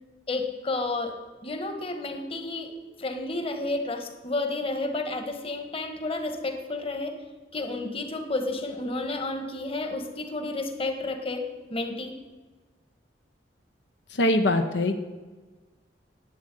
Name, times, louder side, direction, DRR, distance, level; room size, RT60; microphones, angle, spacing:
voice 1, 0.3-2.7 3.0-7.1 7.5-12.2, left 2 dB, 30° left, 6 dB, 1.6 m, -31 dB
voice 2, 14.2-14.9, left 1 dB, 75° left, 7 dB, 0.9 m, -22 dB
11.0 x 8.8 x 9.1 m, 1.3 s
head